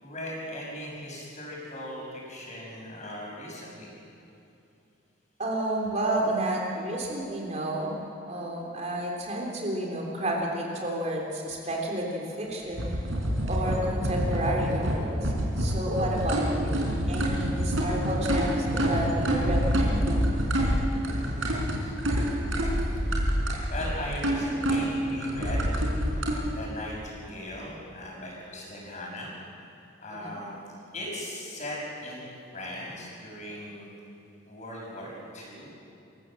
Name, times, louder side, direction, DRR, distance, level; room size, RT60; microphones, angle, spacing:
voice 1, 0.0-3.9 21.1-21.7 23.7-25.7 26.5-29.3 30.0-30.6 30.9-32.3 32.5-33.9 34.5-35.7, left 1 dB, 35° left, -2 dB, 6.4 m, -38 dB
voice 2, 5.4-8.0 8.3-12.9 13.5-20.0 30.1-30.4, right 1 dB, 35° right, -1 dB, 3.7 m, -31 dB
sound 1, 12.7-26.4, equal, 85° right, 5.2 m, -27 dB
27.5 x 16.5 x 7.7 m, 2.8 s
head